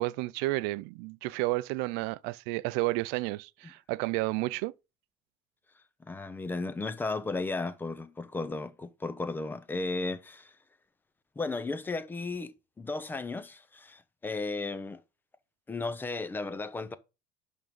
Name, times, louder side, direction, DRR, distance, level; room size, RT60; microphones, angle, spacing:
voice 1, 0.0-4.7, right 20 dB, 85° right, 0.4 m, -31 dB
voice 2, 6.1-10.5 11.4-15.0 15.7-17.0, left 3 dB, 10° left, 0.6 m, -35 dB
10.5 x 3.7 x 5.3 m
cardioid pair, 155°, 17 cm